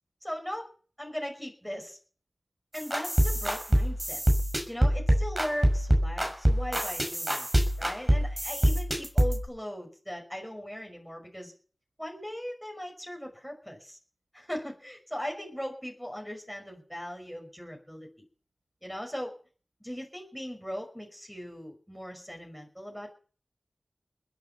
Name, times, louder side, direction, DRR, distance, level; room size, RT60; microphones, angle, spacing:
voice 1, 0.2-0.7 1.0-2.0 2.7-4.2 4.7-7.5 7.8-11.5 12.0-14.0 14.3-18.1 18.8-19.3 19.8-23.1, equal, ahead, 1 dB, 5.8 m, -39 dB
sound 1, 2.8-9.4, equal, 25° right, 5.9 m, -25 dB
21.0 x 8.9 x 7.1 m, 0.41 s
wide cardioid pair, 55°, 0 cm